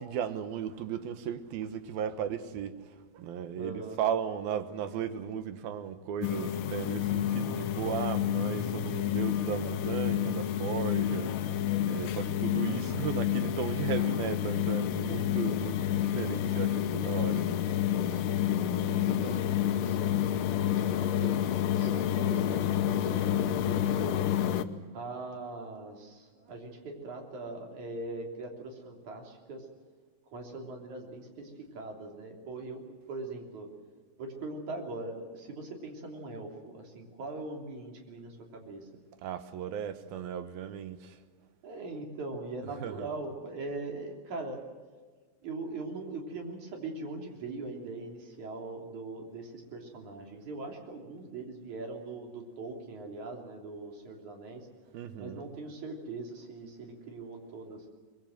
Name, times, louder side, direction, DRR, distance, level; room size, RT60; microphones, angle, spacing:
voice 1, 0.0-17.5 18.1-18.2 39.2-41.2 42.7-43.1 54.9-55.5, right 8 dB, 85° right, 3.1 m, -36 dB
voice 2, 3.6-4.0 18.9-20.4 21.0-24.2 24.9-29.7 30.3-33.7 34.2-38.9 41.6-44.7 45.4-54.7 55.2-57.8, right 3 dB, 55° right, 4.5 m, -41 dB
sound 1, 6.2-24.6, left 10 dB, 75° left, 2.4 m, -29 dB
23.5 x 22.0 x 7.7 m
omnidirectional pair, 4.2 m